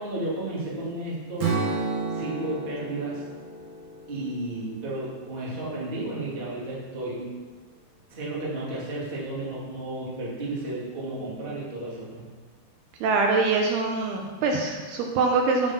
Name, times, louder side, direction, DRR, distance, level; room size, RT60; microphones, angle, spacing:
voice 1, 0.0-1.7 2.1-3.2 4.1-7.4 8.1-12.2, right 2 dB, 20° right, -6 dB, 1.7 m, -33 dB
Strum, 1.4-5.6, right 3 dB, 55° right, 1.7 m, -32 dB
voice 2, 13.0-15.7, right 4 dB, 75° right, 2 dB, 2.7 m, -24 dB
9.0 x 8.0 x 5.6 m, 1.4 s
omnidirectional pair, 5.0 m